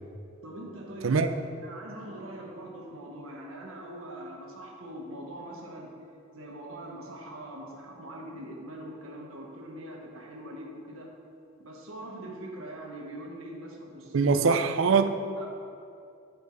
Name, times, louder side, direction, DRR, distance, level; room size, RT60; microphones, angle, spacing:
voice 1, 0.4-1.3 1.6-5.9 6.3-11.1 11.6-14.4 15.4-15.5, right 1 dB, 85° right, 1.2 m, -42 dB
voice 2, 14.1-15.2, right 5 dB, 70° right, 0.4 m, -22 dB
8.0 x 5.1 x 4.6 m
head